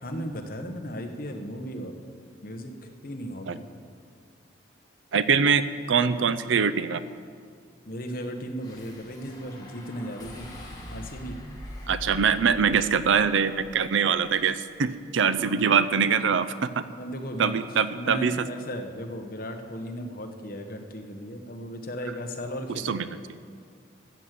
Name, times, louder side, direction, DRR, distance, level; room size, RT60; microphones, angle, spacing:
voice 1, 0.0-2.0 2.4-2.7 3.0-3.8 7.9-10.5 10.9-11.4 15.2-15.7 16.7-17.7 17.9-23.1, equal, 50° left, 4 dB, 1.2 m, -36 dB
voice 2, 5.1-5.6 5.9-7.0 11.9-16.7 17.4-18.5 22.7-23.0, right 6 dB, 80° right, 13 dB, 0.5 m, -23 dB
sound 1, 8.6-15.0, equal, 20° left, 1.8 m, -43 dB
14.0 x 8.2 x 7.6 m, 2.2 s
head